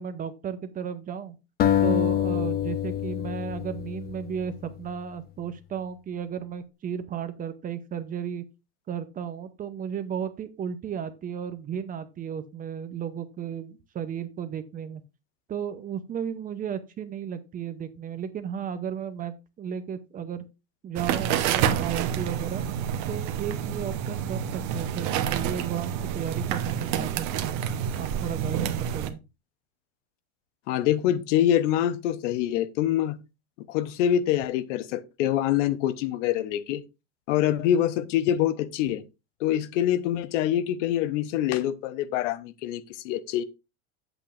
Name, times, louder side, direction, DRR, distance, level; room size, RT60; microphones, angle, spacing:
voice 1, 0.0-1.4 1.8-8.4 8.9-15.0 15.5-20.4 20.8-22.6 23.1-27.6 28.0-29.2, right 8 dB, 25° right, 0.7 m, -34 dB
sound 1, 1.6-4.8, left 10 dB, 25° left, 0.7 m, -26 dB
sound 2, 21.0-29.1, right 9 dB, 55° right, 1.1 m, -28 dB
voice 2, 30.7-33.2 33.6-36.8 37.3-39.0 39.4-43.4, left 11 dB, 80° left, 0.9 m, -25 dB
8.8 x 8.0 x 2.5 m
supercardioid pair, 145°, 36 cm